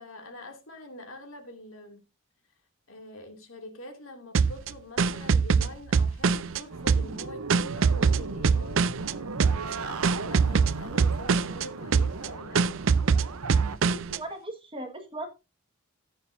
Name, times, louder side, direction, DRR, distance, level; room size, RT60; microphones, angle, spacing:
voice 1, 0.0-2.0 2.9-12.8, left 1 dB, 65° left, 2.7 m, -45 dB
sound 1, 4.3-6.6 6.9-9.1 9.4-9.7 10.0-11.6 11.9-12.3 12.5-14.2, right 5 dB, 60° right, 0.5 m, -23 dB
sound 2, 6.7-13.8, right 4 dB, 85° right, 0.9 m, -37 dB
voice 2, 13.9-15.3, right 1 dB, 25° right, 1.7 m, -38 dB
14.5 x 8.9 x 2.7 m
head